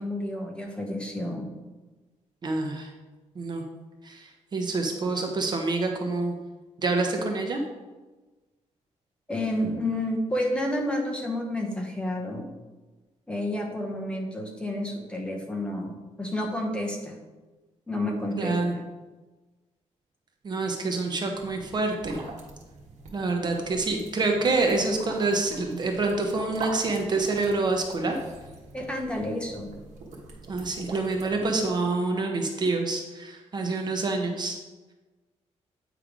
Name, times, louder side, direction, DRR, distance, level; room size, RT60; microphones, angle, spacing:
voice 1, 0.0-1.5 9.3-12.5 13.3-17.2 17.9-18.8 28.7-29.7, left 1 dB, 10° left, 0 dB, 0.9 m, -30 dB
voice 2, 2.4-2.9 3.4-3.6 4.0-6.4 6.8-7.6 18.4-18.7 20.4-22.2 23.1-28.2 30.5-34.6, right 3 dB, 35° right, 3 dB, 0.8 m, -27 dB
sound 1, 21.3-31.7, right 2 dB, 75° right, 1.3 m, -44 dB
8.8 x 3.3 x 5.0 m, 1.2 s
cardioid pair, 145°, 12 cm